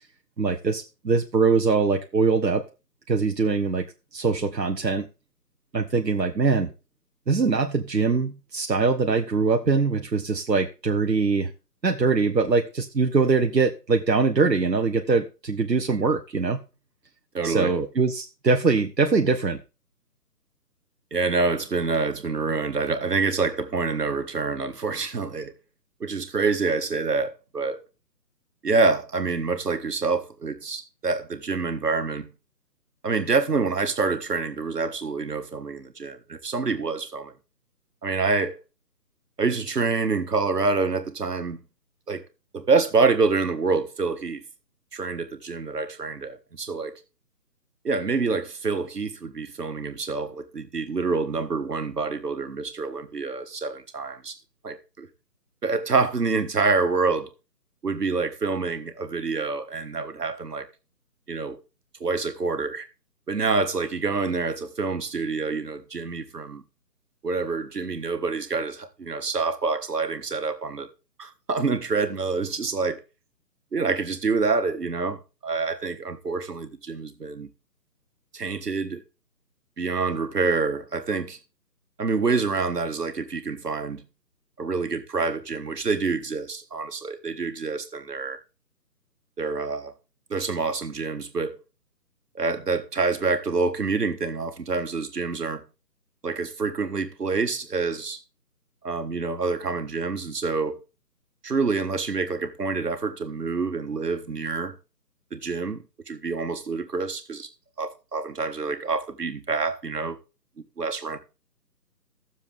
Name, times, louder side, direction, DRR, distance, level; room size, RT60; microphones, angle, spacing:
voice 1, 0.4-2.6 3.1-3.9 4.1-5.1 5.7-6.7 7.3-11.5 11.8-16.6 17.4-19.6, right 4 dB, 90° right, 1.1 m, -22 dB
voice 2, 17.3-17.7 21.1-25.5 26.0-27.8 28.6-32.3 33.0-37.3 38.0-38.6 39.4-41.6 42.1-42.2 42.5-44.4 44.9-47.0 47.8-54.4 54.6-55.1 55.6-57.3 57.8-60.7 61.3-61.6 62.0-62.9 63.3-66.6 67.2-70.9 71.2-73.0 73.7-77.5 78.3-79.0 79.8-81.4 82.0-84.0 84.6-88.4 89.4-89.9 90.3-91.6 92.3-95.6 96.2-98.2 98.8-100.8 101.4-104.7 105.3-107.5 107.8-110.2 110.8-111.2, right 4 dB, 70° right, 1.7 m, -27 dB
15.0 x 7.1 x 3.5 m
figure-of-eight pair, 145°, 48 cm